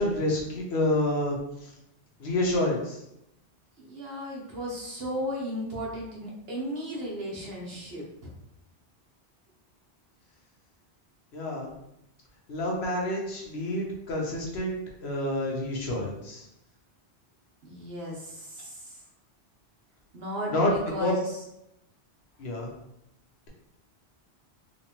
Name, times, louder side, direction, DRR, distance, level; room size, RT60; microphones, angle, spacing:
voice 1, 0.0-1.4 2.2-3.0 11.3-11.7 12.5-14.8 15.0-16.4 20.5-20.7 21.0-21.1 22.4-22.7, left 1 dB, 70° left, -2 dB, 1.1 m, -28 dB
voice 2, 3.8-8.3 17.6-19.0 20.1-21.4, equal, 65° right, -3 dB, 1.2 m, -35 dB
3.9 x 2.5 x 3.0 m, 0.83 s
omnidirectional pair, 1.1 m